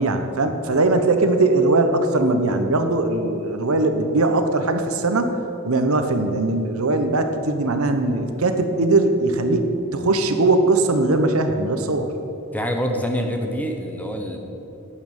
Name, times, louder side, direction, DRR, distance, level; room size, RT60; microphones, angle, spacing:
voice 1, 0.0-5.4 5.6-12.1, right 2 dB, 75° right, 7 dB, 1.0 m, -20 dB
voice 2, 12.5-14.4, equal, 5° left, 3 dB, 1.0 m, -25 dB
11.5 x 8.6 x 7.2 m, 3.0 s
head